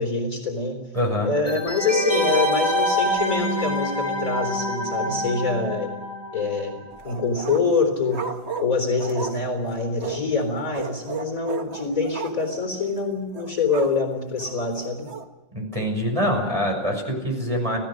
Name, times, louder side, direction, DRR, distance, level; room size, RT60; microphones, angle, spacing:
voice 1, 0.0-0.8 1.2-5.9 6.3-8.3 8.6-15.1, left 4 dB, 45° left, 5 dB, 4.3 m, -25 dB
voice 2, 0.9-1.3 15.5-17.8, equal, 15° right, 2 dB, 6.3 m, -24 dB
sound 1, 1.5-6.9 7.2-7.3, equal, 20° left, 6.8 m, -26 dB
sound 2, 6.9-7.8 8.1-10.3 10.7-12.6 12.9-13.0 13.3-14.0 14.4-15.3, right 6 dB, 40° right, 1.4 m, -34 dB
29.5 x 17.0 x 6.4 m, 1.1 s
omnidirectional pair, 2.0 m